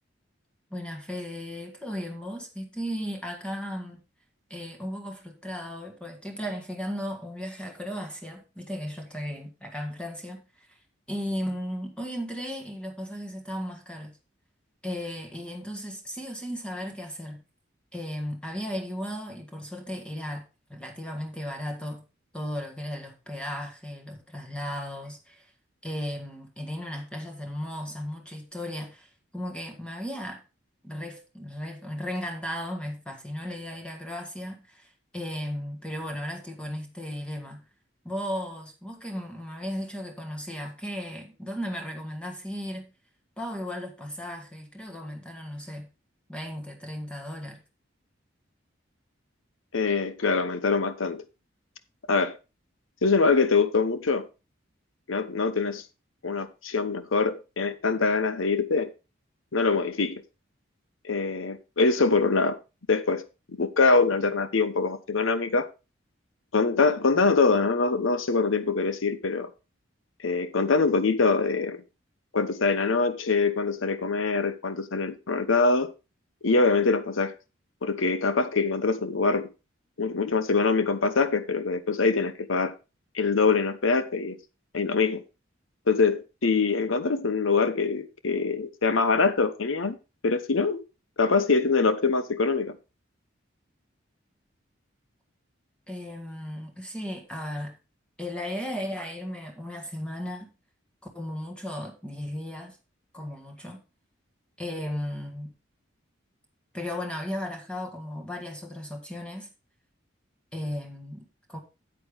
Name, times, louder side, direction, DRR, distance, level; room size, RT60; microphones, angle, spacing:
voice 1, 0.7-4.0 4.5-10.8 11.1-14.2 14.8-17.4 17.9-22.0 22.3-25.5 25.8-30.4 30.8-37.6 38.0-42.9 43.4-45.9 46.3-47.6 95.9-97.8 98.2-100.5 101.2-102.8 103.1-103.8 104.6-105.5 106.7-109.5 110.5-111.6, equal, 5° left, 1.7 m, -35 dB
voice 2, 49.7-51.2 52.1-52.4 53.0-54.3 55.1-55.8 56.2-58.9 59.5-60.2 61.1-62.6 62.9-63.2 63.6-65.7 66.5-69.5 70.2-71.8 72.3-75.9 76.4-77.3 77.8-79.5 80.0-82.7 83.1-84.4 84.7-85.2 85.9-90.0 90.2-90.8 91.2-92.7, left 4 dB, 85° left, 0.9 m, -24 dB
9.0 x 8.6 x 3.5 m
head